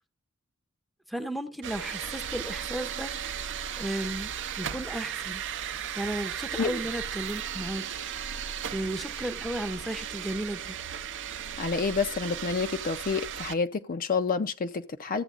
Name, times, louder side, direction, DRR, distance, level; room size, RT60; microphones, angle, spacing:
voice 1, 1.1-3.1 3.8-5.4 6.0-7.9 8.7-10.8, right 1 dB, ahead, 0.6 m, -34 dB
sound 1, 1.6-13.5, right 8 dB, 60° right, 0.6 m, -36 dB
voice 2, 11.6-15.2, left 5 dB, 40° left, 0.5 m, -29 dB
13.5 x 8.0 x 2.4 m
head